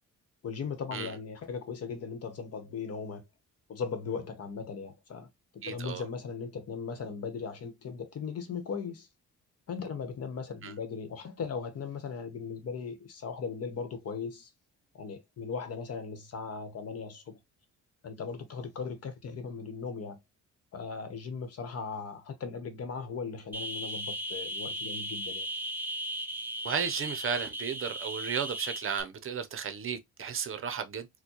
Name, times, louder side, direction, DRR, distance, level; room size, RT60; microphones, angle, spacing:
voice 1, 0.4-3.2 3.7-5.3 5.5-9.1 9.7-14.5 14.9-17.4 18.0-20.2 20.7-25.5, left 5 dB, 55° left, 1.0 m, -38 dB
voice 2, 5.6-6.0 10.6-10.7 26.6-31.1, right 7 dB, 45° right, 0.7 m, -34 dB
sound 1, 23.5-29.0, right 1 dB, 5° right, 0.8 m, -36 dB
4.3 x 2.2 x 2.9 m
cardioid pair, 90°, 30 cm